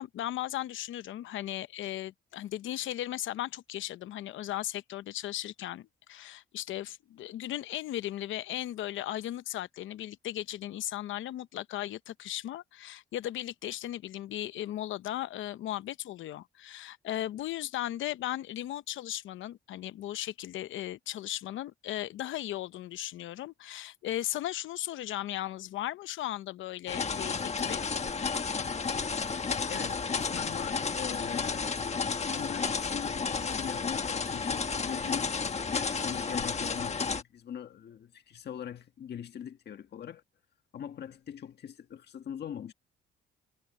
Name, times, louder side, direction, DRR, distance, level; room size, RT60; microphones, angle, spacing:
voice 1, 0.0-27.9, left 13 dB, 75° left, 0.8 m, -36 dB
sound 1, 26.9-37.2, left 5 dB, 35° left, 1.5 m, -32 dB
voice 2, 29.7-31.8 32.1-35.3 35.7-40.2 40.7-42.7, left 9 dB, 55° left, 1.5 m, -42 dB
cardioid pair, 90°, 20 cm